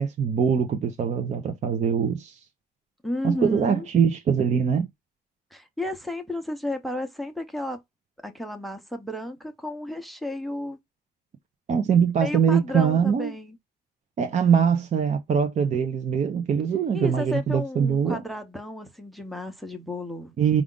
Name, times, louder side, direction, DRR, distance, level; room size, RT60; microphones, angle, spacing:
voice 1, 0.0-2.4 3.2-4.9 11.7-13.3 14.2-18.2 20.4-20.6, right 7 dB, 45° right, 0.6 m, -23 dB
voice 2, 3.0-3.8 5.5-7.8 8.2-10.8 12.2-13.6 16.9-20.3, left 1 dB, ahead, 0.7 m, -32 dB
5.0 x 2.4 x 3.6 m
cardioid pair, 160°, 17 cm